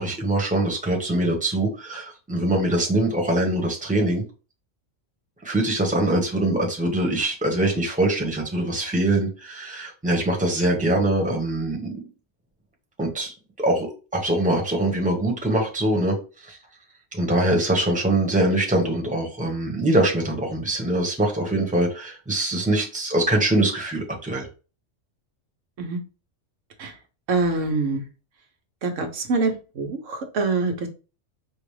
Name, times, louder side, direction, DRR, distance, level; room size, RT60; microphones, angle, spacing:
voice 1, 0.0-4.2 5.4-11.8 13.0-16.2 16.4-16.6 17.1-24.5, right 1 dB, 5° right, 0 dB, 1.0 m, -23 dB
voice 2, 27.3-28.1 28.8-30.9, right 3 dB, 80° right, 4 dB, 1.2 m, -25 dB
5.2 x 2.4 x 3.2 m, 0.33 s
omnidirectional pair, 1.3 m